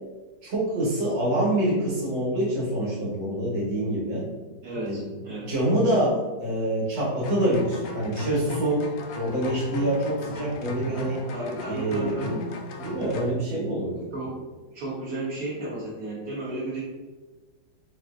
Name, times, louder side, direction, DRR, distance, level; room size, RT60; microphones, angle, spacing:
voice 1, 0.4-4.3 4.8-5.0 5.5-8.9 9.1-11.2 11.7-12.4 12.8-14.1, right 1 dB, 85° right, -6 dB, 2.0 m, -26 dB
voice 2, 4.6-5.5 11.3-12.3 14.1-14.4 14.7-16.8, right 2 dB, 60° right, -7 dB, 1.4 m, -33 dB
sound 1, 7.2-13.3, left 3 dB, 75° left, 1.2 m, -37 dB
4.7 x 2.3 x 2.4 m, 1.3 s
omnidirectional pair, 2.1 m